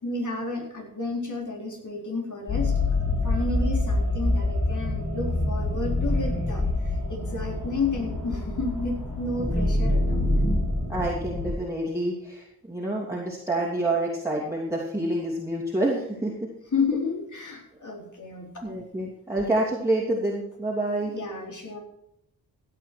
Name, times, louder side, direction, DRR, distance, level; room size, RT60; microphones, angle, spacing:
voice 1, 0.0-2.7 3.2-10.2 16.7-18.7 21.0-21.8, left 3 dB, 50° left, 0 dB, 4.2 m, -31 dB
sound 1, 2.5-11.5, left 2 dB, 70° left, 5.7 m, -26 dB
voice 2, 10.9-16.5 18.6-21.1, right 1 dB, 10° right, -4 dB, 2.9 m, -28 dB
16.0 x 8.9 x 4.7 m, 0.78 s
cardioid pair, 80°, 37 cm